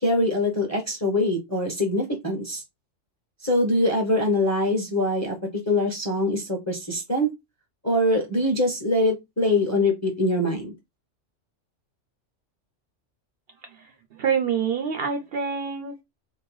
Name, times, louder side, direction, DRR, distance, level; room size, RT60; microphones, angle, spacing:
voice 1, 0.0-2.6 3.4-5.4 5.7-7.3 7.8-10.7, left 1 dB, 20° left, 0.6 m, -23 dB
voice 2, 14.1-16.0, right 6 dB, 65° right, 0.7 m, -26 dB
2.7 x 2.1 x 3.0 m
omnidirectional pair, 1.3 m